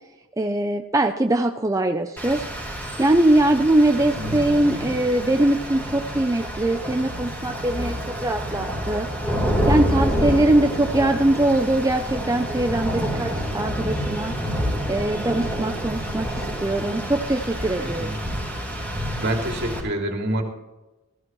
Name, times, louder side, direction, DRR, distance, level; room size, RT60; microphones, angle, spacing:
voice 1, 0.4-2.4 3.0-8.0 8.2-9.1 9.7-14.3 14.9-18.1, right 1 dB, 15° right, 4 dB, 0.5 m, -22 dB
Rain, 2.2-19.8, equal, 10° left, 4.0 m, -28 dB
voice 2, 3.9-4.3 17.8-18.2 19.2-20.4, right 1 dB, 55° right, 2 dB, 2.8 m, -27 dB
16.5 x 15.0 x 3.1 m, 1.0 s
head